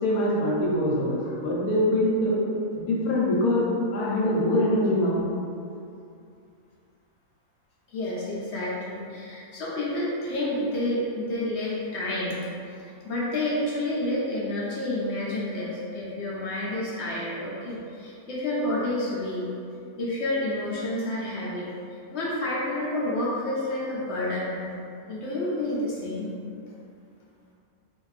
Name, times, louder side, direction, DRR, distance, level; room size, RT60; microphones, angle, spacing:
voice 1, 0.0-2.4 2.8-5.3, left 1 dB, 85° left, -5 dB, 1.2 m, -24 dB
voice 2, 7.9-12.5 13.0-19.5 20.0-21.7 22.1-24.7 25.1-26.3, left 1 dB, 60° left, -6 dB, 0.8 m, -29 dB
2.6 x 2.5 x 3.1 m, 2.5 s
omnidirectional pair, 1.6 m